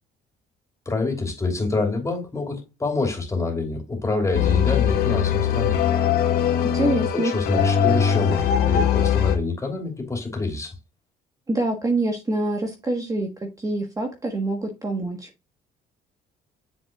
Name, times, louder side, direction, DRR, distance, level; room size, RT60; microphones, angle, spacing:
voice 1, 0.8-5.8 7.1-10.7, left 3 dB, 20° left, 3.1 m, -26 dB
sound 1, 4.3-9.4, left 8 dB, 70° left, 1.3 m, -21 dB
voice 2, 6.7-7.3 11.5-15.3, right 2 dB, 20° right, 1.4 m, -25 dB
7.3 x 6.0 x 2.4 m
cardioid pair, 110°, 17 cm